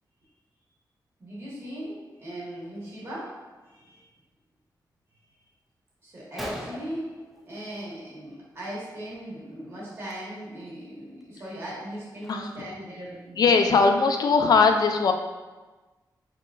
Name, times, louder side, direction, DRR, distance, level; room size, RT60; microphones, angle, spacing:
voice 1, 1.2-3.3 3.6-4.0 6.0-7.1 7.4-13.7, right 1 dB, 35° right, -8 dB, 1.5 m, -38 dB
Gunshot gunfire, 5.7-5.8 6.1-6.2 6.4-8.0 8.3-8.7 8.9-9.2 9.9-10.1 10.7-10.8 11.2-12.8, equal, ahead, 0.5 m, -41 dB
voice 2, 12.3-12.7 13.4-15.1, left 4 dB, 60° left, 5 dB, 0.4 m, -20 dB
5.5 x 3.6 x 2.5 m, 1.2 s
wide cardioid pair, 160°, 8 cm